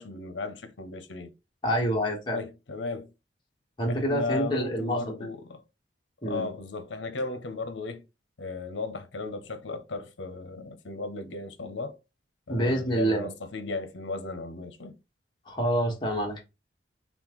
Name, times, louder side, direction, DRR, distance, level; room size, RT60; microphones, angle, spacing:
voice 1, 0.0-1.3 2.3-3.1 3.9-5.6 6.2-8.0 8.4-12.0 12.5-15.0, left 3 dB, 80° left, 0.7 m, -35 dB
voice 2, 1.6-2.4 3.8-5.3 6.2-6.5 12.5-13.3 15.5-16.4, right 1 dB, 25° left, 1.5 m, -27 dB
4.2 x 3.7 x 3.0 m
head